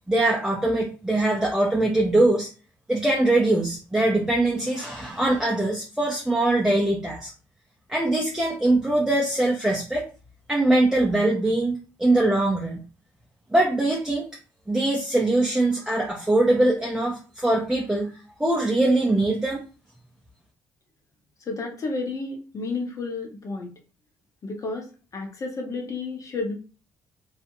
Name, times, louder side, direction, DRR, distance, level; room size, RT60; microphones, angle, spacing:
voice 1, 0.1-2.5 2.9-7.3 7.9-10.1 10.5-12.8 13.5-14.3 14.7-18.1 18.4-19.6, right 2 dB, 5° right, -2 dB, 0.6 m, -22 dB
voice 2, 21.5-23.7 24.4-24.9 25.1-26.5, left 3 dB, 40° left, 2 dB, 0.8 m, -31 dB
2.4 x 2.0 x 2.9 m, 0.35 s
supercardioid pair, 75°, 8 cm